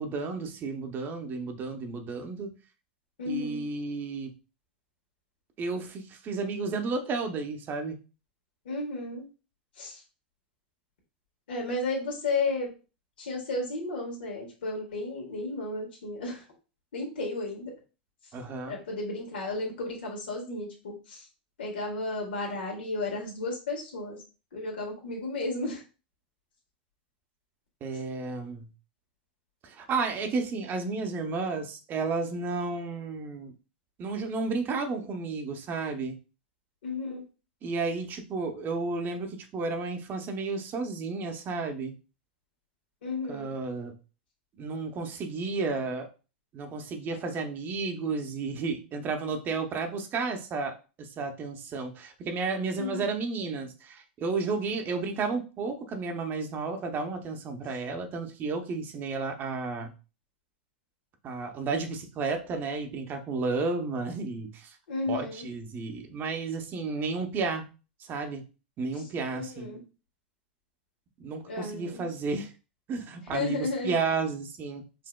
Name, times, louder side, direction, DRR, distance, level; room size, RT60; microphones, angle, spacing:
voice 1, 0.0-2.5 3.3-4.3 5.6-8.0 18.3-18.8 27.8-28.7 29.6-33.5 34.0-36.1 37.6-41.9 43.3-43.9 44.6-46.1 46.5-59.9 61.2-64.8 65.1-67.6 68.1-68.4 68.8-69.7 71.2-72.5 72.9-74.8, right 4 dB, 35° right, 5 dB, 0.8 m, -32 dB
voice 2, 3.2-3.6 8.7-9.2 9.8-10.0 11.5-12.7 13.2-16.4 16.9-17.7 18.7-21.3 21.6-24.2 24.5-25.8 36.8-37.2 43.0-43.5 52.8-53.1 64.9-65.5 69.3-69.8 71.4-72.1 73.3-74.0, left 3 dB, 80° left, 0 dB, 1.6 m, -33 dB
5.1 x 2.7 x 2.3 m, 0.33 s
hypercardioid pair, 105°, 6 cm